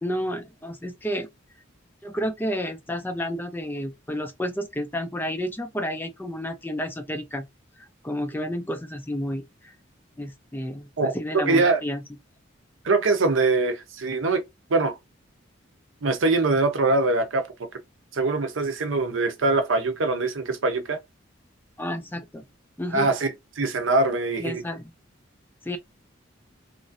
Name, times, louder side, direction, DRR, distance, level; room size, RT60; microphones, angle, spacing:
voice 1, 0.0-1.3 2.0-7.4 7.8-9.7 10.2-12.0 21.8-22.4 22.8-23.1 24.4-24.9 25.6-25.8, equal, 10° left, 0.3 m, -31 dB
voice 2, 11.0-11.8 12.8-14.4 14.7-14.9 16.0-17.5 18.1-21.0 22.9-24.6, right 3 dB, 75° right, 0.7 m, -23 dB
3.0 x 2.5 x 2.5 m
head